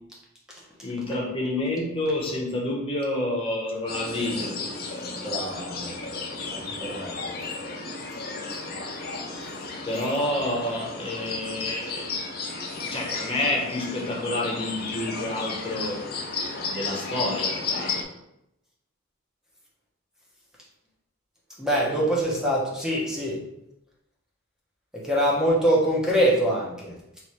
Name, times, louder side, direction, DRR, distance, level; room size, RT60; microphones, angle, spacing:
voice 1, 0.8-4.6 9.8-12.1 12.4-16.1 16.7-18.0, left 1 dB, 25° left, -2 dB, 1.0 m, -29 dB
sound 1, 3.9-18.0, left 3 dB, 50° left, 0.7 m, -33 dB
voice 2, 5.2-5.9 6.5-7.1 21.6-23.4 24.9-26.9, equal, 5° right, -4 dB, 0.9 m, -24 dB
3.1 x 3.1 x 4.4 m, 0.83 s
head